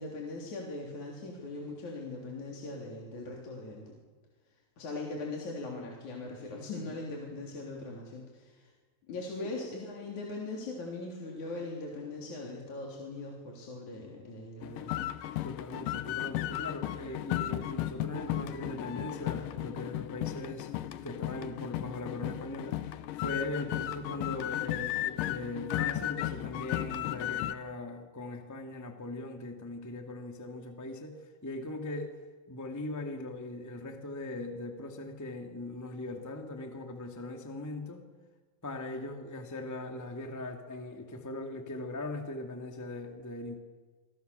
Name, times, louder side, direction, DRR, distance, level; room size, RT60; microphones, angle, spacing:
voice 1, 0.0-4.0 4.8-8.7 9.1-15.1, left 2 dB, 45° left, -1 dB, 4.5 m, -40 dB
sound 1, 14.6-27.5, left 14 dB, 85° left, 1.9 m, -35 dB
voice 2, 15.4-20.7 21.0-32.1 32.5-38.0 38.6-43.6, left 2 dB, 10° left, 4 dB, 0.9 m, -40 dB
27.5 x 24.5 x 7.0 m, 1.4 s
omnidirectional pair, 5.1 m